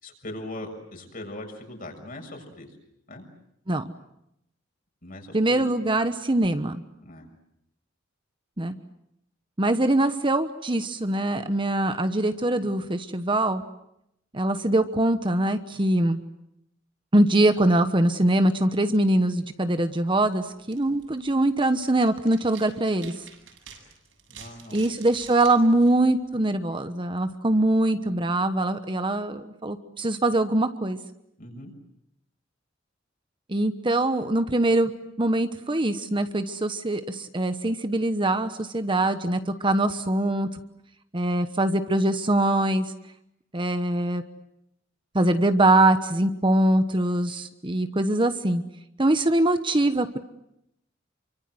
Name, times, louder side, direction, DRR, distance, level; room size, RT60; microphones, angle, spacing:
voice 1, 0.0-2.7 3.1-3.2 5.0-5.7 7.0-7.3 24.3-24.8 31.4-31.7, left 1 dB, 45° left, 3 dB, 6.8 m, -40 dB
voice 2, 5.3-6.8 8.6-8.7 9.6-13.6 14.3-16.2 17.1-23.1 24.7-31.0 33.5-34.9 35.2-40.5 41.1-42.9 43.5-44.2 45.1-48.6 49.0-50.2, right 1 dB, 25° right, 9 dB, 1.1 m, -23 dB
sound 1, 19.7-26.7, right 7 dB, 75° right, 7.9 m, -50 dB
28.5 x 25.0 x 7.9 m, 0.80 s
head